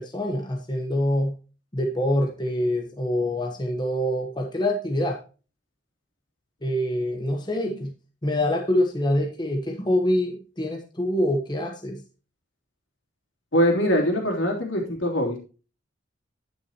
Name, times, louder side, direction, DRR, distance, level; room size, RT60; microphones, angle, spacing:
voice 1, 0.0-1.3 1.7-5.2 6.6-7.9 8.2-12.0, left 1 dB, 20° left, 2 dB, 1.1 m, -25 dB
voice 2, 13.5-15.4, equal, 75° left, 1 dB, 3.2 m, -22 dB
9.6 x 9.5 x 3.0 m, 0.34 s
head